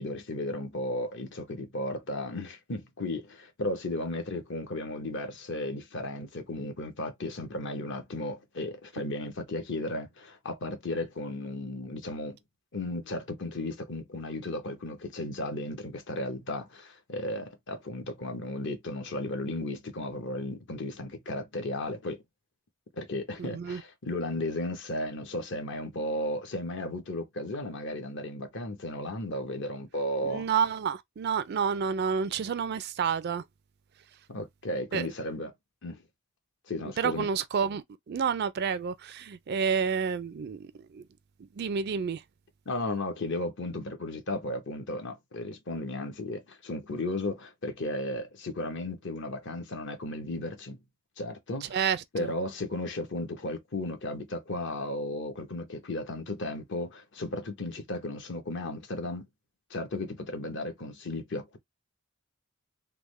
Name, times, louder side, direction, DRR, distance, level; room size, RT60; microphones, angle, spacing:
voice 1, 0.0-12.4 12.7-22.2 23.0-30.5 34.3-35.5 35.8-36.0 36.7-37.3 42.7-50.8 51.2-59.2 59.7-61.6, left 1 dB, 55° left, 0.9 m, -35 dB
voice 2, 23.4-23.8 30.2-33.4 34.9-35.1 37.0-41.0 41.6-42.2 51.7-52.3, right 6 dB, 50° right, 0.3 m, -29 dB
3.5 x 2.1 x 3.1 m
head